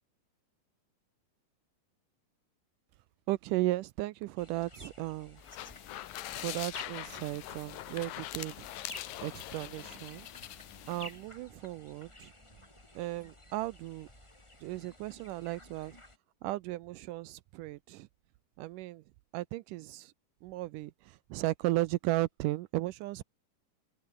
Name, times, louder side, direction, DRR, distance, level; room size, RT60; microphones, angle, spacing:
voice 1, 3.3-5.4 6.3-8.5 9.2-10.3 10.9-12.3 13.0-14.1 14.6-16.0 16.4-18.1 18.6-19.0 19.3-20.1 20.4-23.2, right 17 dB, 80° right, 2.1 m, -35 dB
sound 1, 4.4-16.2, left 1 dB, 10° left, 2.5 m, -53 dB
sound 2, 5.4-11.2, left 15 dB, 80° left, 2.7 m, -43 dB
sound 3, 6.2-14.9, right 2 dB, 20° right, 7.2 m, -70 dB
open air
omnidirectional pair, 4.0 m